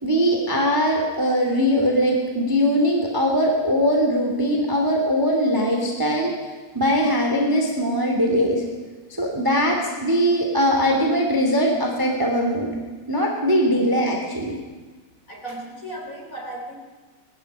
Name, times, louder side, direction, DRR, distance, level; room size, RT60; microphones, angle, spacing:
voice 1, 0.0-6.3 6.7-8.6 9.2-12.7 13.1-14.6, equal, 5° right, 1 dB, 2.2 m, -21 dB
voice 2, 15.3-16.8, right 1 dB, 20° left, 1 dB, 3.4 m, -35 dB
20.0 x 13.0 x 10.0 m, 1.3 s
omnidirectional pair, 4.4 m